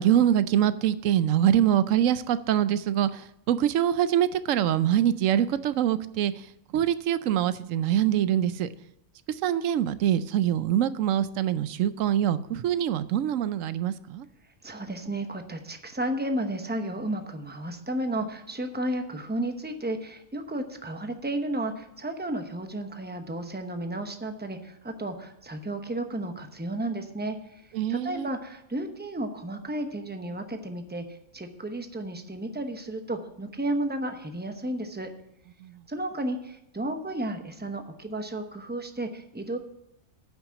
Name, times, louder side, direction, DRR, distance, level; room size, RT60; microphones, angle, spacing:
voice 1, 0.0-6.3 6.7-8.7 9.3-14.3 27.7-28.3 35.6-35.7, right 10 dB, 85° right, 15 dB, 1.0 m, -24 dB
voice 2, 14.6-27.6 27.9-35.1 35.9-39.6, right 1 dB, 10° right, 6 dB, 0.7 m, -33 dB
9.1 x 6.0 x 8.2 m, 0.81 s
omnidirectional pair, 1.3 m